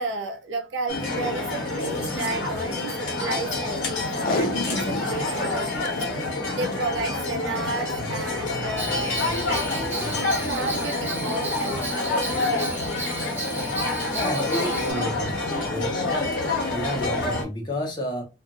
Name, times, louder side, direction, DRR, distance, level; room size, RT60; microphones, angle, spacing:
voice 1, 0.0-6.1 6.5-9.2 9.5-12.8 14.7-15.1, right 3 dB, 85° right, 0.6 m, -33 dB
sound 1, 0.9-17.4, left 2 dB, 85° left, 1.1 m, -27 dB
Packing tape duct tape, 4.1-5.2 5.6-5.9 6.5-6.8 7.8-8.1 8.7-8.8, left 2 dB, 50° left, 0.3 m, -28 dB
Bell, 8.8-14.9, right 3 dB, 10° right, 0.5 m, -35 dB
voice 2, 14.1-15.3 15.7-16.0 16.7-18.2, equal, 25° left, 0.9 m, -30 dB
2.6 x 2.5 x 2.4 m
head